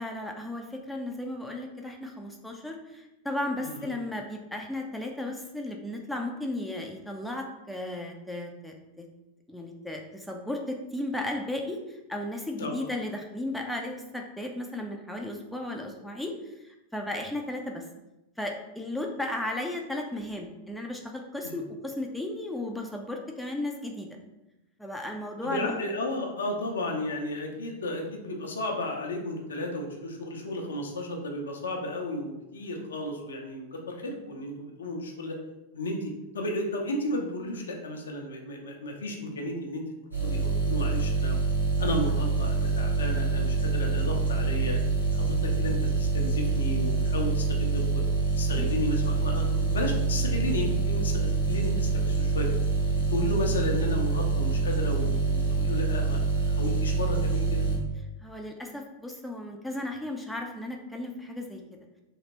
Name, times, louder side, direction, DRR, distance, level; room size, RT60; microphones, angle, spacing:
voice 1, 0.0-9.1 9.5-17.8 18.4-24.1 24.8-25.8 48.6-48.7 58.2-61.6, left 1 dB, 5° left, 1 dB, 0.4 m, -35 dB
voice 2, 3.6-3.9 12.6-12.9 21.4-21.6 25.4-35.4 35.7-39.8 40.2-41.4 41.8-44.8 45.2-48.0 48.4-52.5 52.9-56.2 56.5-57.7, left 1 dB, 70° left, 2 dB, 0.5 m, -33 dB
sound 1, 40.1-57.8, right 4 dB, 90° right, 1.1 m, -26 dB
3.0 x 2.8 x 2.9 m, 0.96 s
figure-of-eight pair, 90°, 0 cm